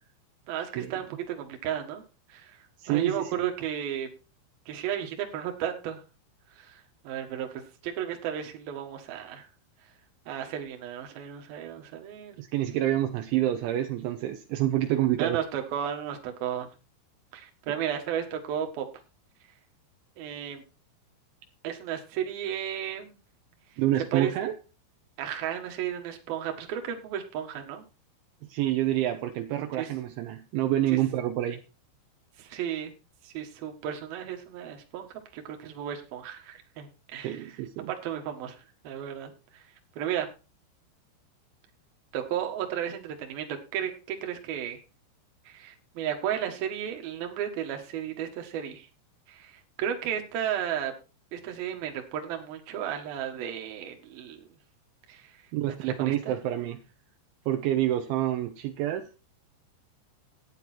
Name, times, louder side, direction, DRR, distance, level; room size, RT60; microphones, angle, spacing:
voice 1, 0.5-2.0 2.3-2.6 2.9-4.1 4.7-6.0 6.5-9.5 10.3-12.4 15.2-16.7 17.3-18.8 20.2-20.6 21.6-23.2 24.1-24.3 25.2-27.8 29.8-29.9 30.9-31.0 32.4-32.9 33.2-35.1 35.3-37.5 37.8-39.6 40.0-40.3 42.1-44.8 45.5-48.9 49.3-50.9 51.3-54.4 55.1-55.4 55.8-56.4, right 9 dB, 60° right, 4 dB, 3.0 m, -34 dB
voice 2, 2.8-3.5 12.4-15.4 23.8-24.6 28.5-31.6 37.2-37.9 55.5-56.8 57.5-59.1, right 13 dB, 80° right, 5 dB, 3.1 m, -27 dB
12.5 x 9.9 x 4.5 m, 0.32 s
omnidirectional pair, 5.9 m